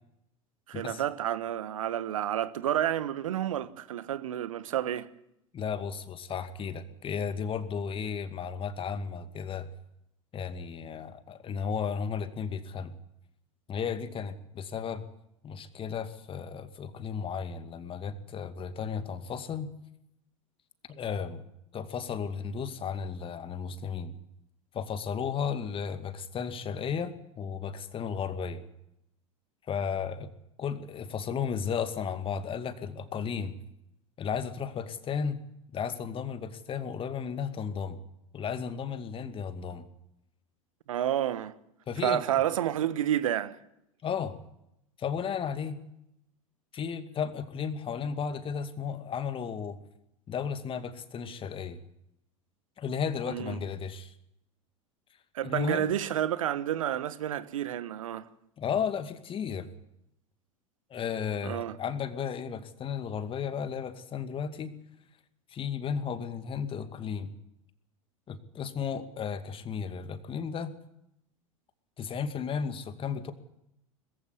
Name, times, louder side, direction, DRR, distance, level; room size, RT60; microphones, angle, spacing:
voice 1, 0.7-5.1 40.9-41.5 42.0-43.6 53.3-53.6 55.3-58.2 61.4-61.7, right 11 dB, 75° right, 1.3 m, -30 dB
voice 2, 5.5-9.7 10.3-12.9 13.7-15.0 15.4-19.7 20.9-21.4 21.7-24.1 24.7-28.6 29.7-30.3 30.6-33.5 34.2-35.4 35.7-38.0 38.3-39.9 41.9-42.2 44.0-44.3 45.0-45.8 46.7-49.8 50.3-51.8 52.8-54.1 55.4-55.9 58.6-59.7 60.9-64.7 65.5-67.3 68.3-70.7 72.0-73.3, left 6 dB, 30° left, 2.3 m, -34 dB
21.0 x 15.5 x 9.8 m
hypercardioid pair, 85°, 17 cm